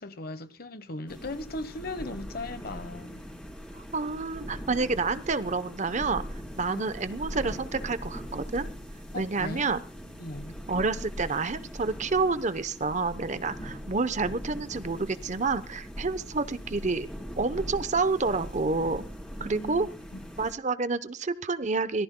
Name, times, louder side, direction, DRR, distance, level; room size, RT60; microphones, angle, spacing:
voice 1, 0.0-3.3 6.7-6.8 9.1-9.7 10.2-10.5 13.6-13.7 19.4-19.9 20.1-20.2, left 2 dB, 55° left, 1.2 m, -38 dB
sound 1, 1.1-20.5, equal, 5° left, 3.8 m, -41 dB
voice 2, 3.7-6.2 6.6-8.7 9.1-9.8 10.7-17.1 17.4-19.0 19.4-19.9 20.4-22.0, right 3 dB, 40° right, 0.8 m, -29 dB
25.0 x 18.0 x 2.3 m
head